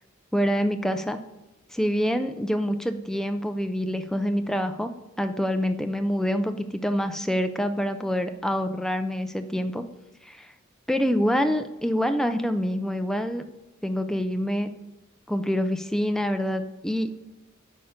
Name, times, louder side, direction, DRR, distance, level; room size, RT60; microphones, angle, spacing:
voice 1, 0.3-1.2 1.7-4.9 5.2-9.8 10.2-10.5 10.9-13.4 13.8-14.7 15.3-17.3, equal, 5° left, 8 dB, 0.4 m, -26 dB
8.7 x 5.6 x 5.0 m, 1.1 s
head